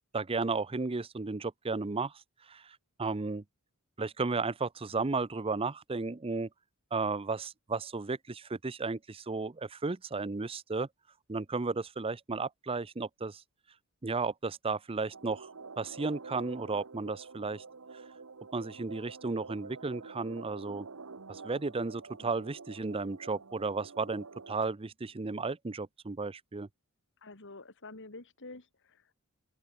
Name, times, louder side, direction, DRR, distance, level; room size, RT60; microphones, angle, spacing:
voice 1, 0.1-2.1 2.5-3.4 4.0-6.5 6.9-10.9 11.3-13.4 14.0-15.5 15.8-17.6 18.5-20.9 21.3-26.7, right 3 dB, 25° right, 0.6 m, -34 dB
sound 1, 15.1-24.6, right 4 dB, 70° right, 1.1 m, -48 dB
voice 2, 27.2-29.2, left 2 dB, 60° left, 2.5 m, -49 dB
open air
head